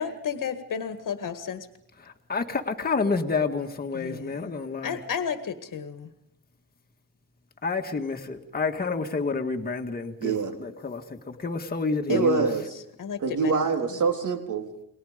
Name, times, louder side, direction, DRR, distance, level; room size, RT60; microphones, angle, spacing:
voice 1, 0.0-1.7 3.9-4.5 4.8-6.1 12.1-12.6 13.0-13.6, left 7 dB, 55° left, 8 dB, 1.8 m, -32 dB
voice 2, 2.0-5.0 7.6-10.3 10.6-12.5, left 4 dB, 25° left, 3 dB, 1.8 m, -29 dB
voice 3, 10.2-10.6 12.1-12.8 13.2-14.7, right 5 dB, 50° right, 4 dB, 3.8 m, -25 dB
30.0 x 22.0 x 5.1 m, 0.78 s
wide cardioid pair, 170°, 38 cm